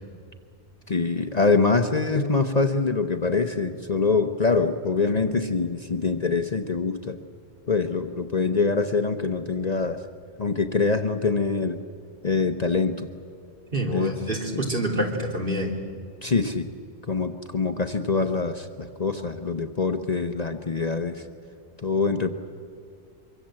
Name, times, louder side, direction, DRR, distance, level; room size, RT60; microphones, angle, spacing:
voice 1, 0.9-7.2 7.7-10.0 10.4-11.8 12.2-13.1 13.9-14.1 14.5-14.6 16.2-16.7 17.1-21.2 21.8-22.3, left 4 dB, 40° left, 6 dB, 1.0 m, -24 dB
voice 2, 13.7-15.7, right 1 dB, 50° right, 0 dB, 3.5 m, -27 dB
24.5 x 24.0 x 7.7 m, 2.3 s
omnidirectional pair, 1.2 m